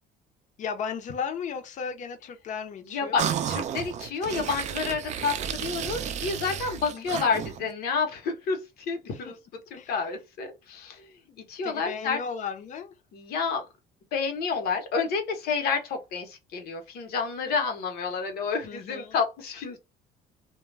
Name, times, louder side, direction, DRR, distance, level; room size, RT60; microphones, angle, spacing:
voice 1, 0.6-3.3 6.8-7.1 9.1-9.4 9.7-10.1 11.3-12.9 18.6-19.2, left 6 dB, 45° left, 0.6 m, -36 dB
voice 2, 2.9-8.6 8.9-9.3 9.9-11.0 11.5-12.2 13.1-13.6 14.1-19.8, left 5 dB, 70° left, 0.9 m, -29 dB
sound 1, 3.2-7.7, right 8 dB, 45° right, 0.4 m, -32 dB
2.2 x 2.1 x 3.2 m
cardioid pair, 125°, 17 cm